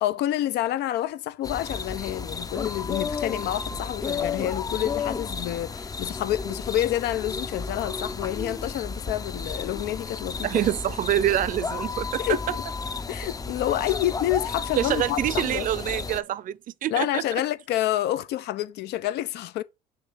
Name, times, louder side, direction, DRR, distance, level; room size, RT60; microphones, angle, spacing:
voice 1, 0.0-10.5 12.2-12.6 13.1-15.7 16.9-19.6, left 13 dB, 80° left, 0.7 m, -28 dB
sound 1, 1.4-16.2, left 4 dB, 20° left, 0.5 m, -33 dB
voice 2, 10.4-12.5 14.8-17.2, right 12 dB, 55° right, 0.6 m, -26 dB
6.7 x 2.8 x 5.7 m
cardioid pair, 110°, 17 cm